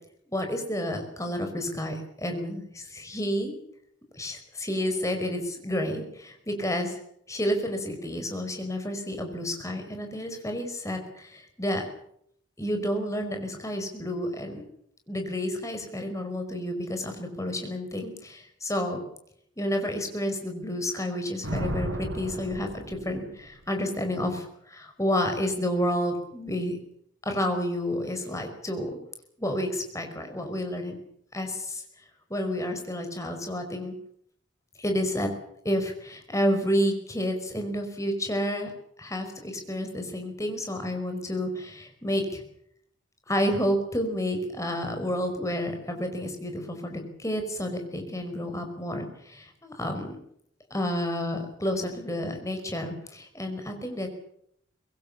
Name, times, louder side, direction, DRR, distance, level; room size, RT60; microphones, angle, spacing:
voice 1, 0.3-3.5 4.1-7.0 7.3-11.8 12.6-14.6 15.1-19.0 19.6-26.8 27.2-29.0 29.4-31.0 31.3-31.8 32.3-33.9 34.8-35.3 35.6-38.7 39.0-42.4 43.3-50.2 50.7-54.1, equal, 15° left, 5 dB, 4.9 m, -30 dB
Thunder, 21.4-23.6, equal, 80° right, 5.9 m, -34 dB
25.0 x 20.5 x 7.3 m, 0.70 s
head